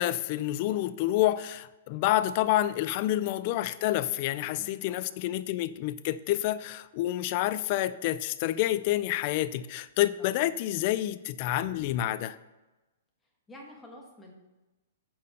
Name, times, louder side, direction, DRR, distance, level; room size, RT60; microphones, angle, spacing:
voice 1, 0.0-12.4, left 14 dB, 35° left, 0.3 m, -28 dB
voice 2, 4.4-5.1 10.2-10.3 13.5-14.3, left 1 dB, 10° left, 1.4 m, -49 dB
8.4 x 4.3 x 6.6 m
hypercardioid pair, 160°, 0 cm